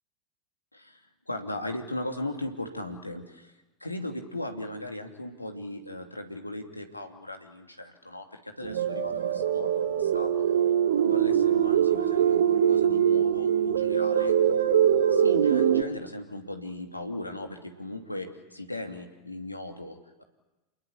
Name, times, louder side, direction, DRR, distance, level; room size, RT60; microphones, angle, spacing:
voice 1, 1.3-3.5 3.8-10.3 10.9-14.4 15.1-20.2, left 1 dB, 85° left, 4 dB, 2.8 m, -37 dB
sound 1, 8.6-15.8, right 9 dB, 65° right, 1.4 m, -23 dB
29.0 x 21.5 x 8.7 m, 1.1 s
figure-of-eight pair, 85°, 0 cm